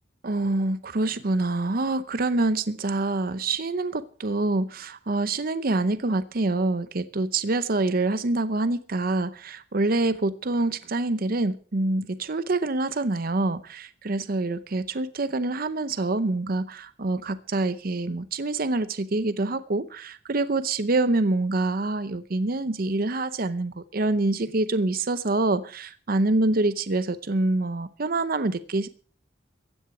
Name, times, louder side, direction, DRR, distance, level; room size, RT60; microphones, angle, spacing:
voice 1, 0.2-28.9, right 2 dB, 50° right, 13 dB, 0.7 m, -26 dB
15.5 x 10.0 x 6.0 m, 0.42 s
head